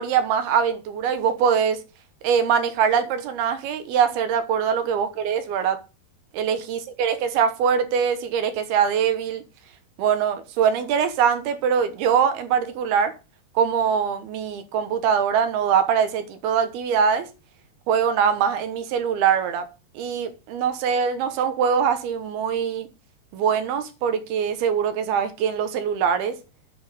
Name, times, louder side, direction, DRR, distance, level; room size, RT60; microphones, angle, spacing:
voice 1, 0.0-1.8 2.2-5.8 6.3-9.4 10.0-13.1 13.6-17.3 17.9-19.7 20.0-22.9 23.3-26.4, right 7 dB, 85° right, 3.1 m, -22 dB
8.6 x 5.7 x 6.7 m
omnidirectional pair, 4.4 m